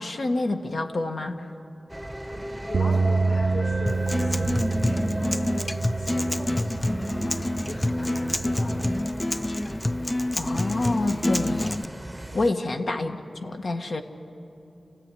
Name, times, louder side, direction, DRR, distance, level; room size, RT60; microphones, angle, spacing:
voice 1, 0.0-1.4 10.4-11.9 12.3-14.0, left 2 dB, 65° left, 4 dB, 1.6 m, -28 dB
sound 1, 1.9-12.5, right 1 dB, 10° right, 0.9 m, -37 dB
voice 2, 2.2-8.9 12.3-12.5, left 1 dB, 90° left, -1 dB, 5.3 m, -39 dB
sound 2, 2.7-9.0, right 3 dB, 70° right, 0.6 m, -28 dB
Acoustic guitar, 3.9-11.8, left 1 dB, 20° left, 0.5 m, -27 dB
28.5 x 15.5 x 9.9 m, 2.8 s
wide cardioid pair, 75°, 0 cm